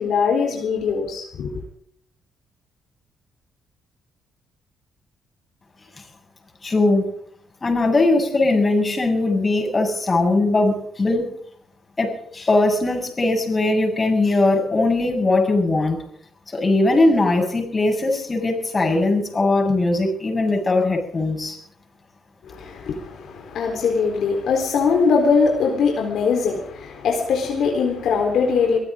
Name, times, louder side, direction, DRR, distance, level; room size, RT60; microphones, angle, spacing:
voice 1, 0.0-1.5 22.4-28.8, left 5 dB, 70° left, 1 dB, 4.1 m, -21 dB
voice 2, 6.6-7.1 7.6-11.3 12.0-16.0 16.5-21.6, left 2 dB, 30° left, 2 dB, 7.2 m, -20 dB
24.0 x 15.5 x 3.8 m, 0.63 s
cardioid pair, 90°, 0 cm